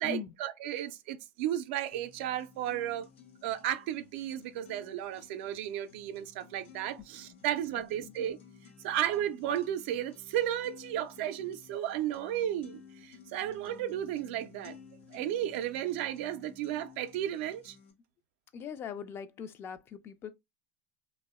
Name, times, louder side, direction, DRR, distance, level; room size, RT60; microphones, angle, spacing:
voice 1, 0.0-3.1 3.4-8.4 8.8-14.8 15.1-17.8, right 11 dB, 70° right, 0.3 m, -34 dB
sound 1, 1.9-17.9, left 5 dB, 85° left, 0.6 m, -55 dB
voice 2, 7.7-8.1 18.5-20.3, left 6 dB, 40° left, 0.3 m, -41 dB
2.7 x 2.0 x 2.2 m
hypercardioid pair, 95°, 6 cm